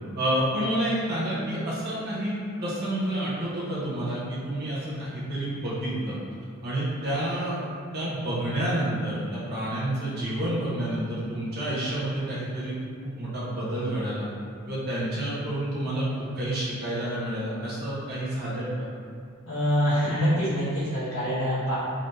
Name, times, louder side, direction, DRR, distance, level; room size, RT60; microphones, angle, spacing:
voice 1, 0.2-6.2 6.6-7.6 7.9-14.3 14.7-16.1 16.3-18.9, right 1 dB, 50° right, -9 dB, 1.1 m, -29 dB
voice 2, 19.5-21.7, equal, 75° left, -12 dB, 1.1 m, -25 dB
4.0 x 3.3 x 2.7 m, 2.2 s
head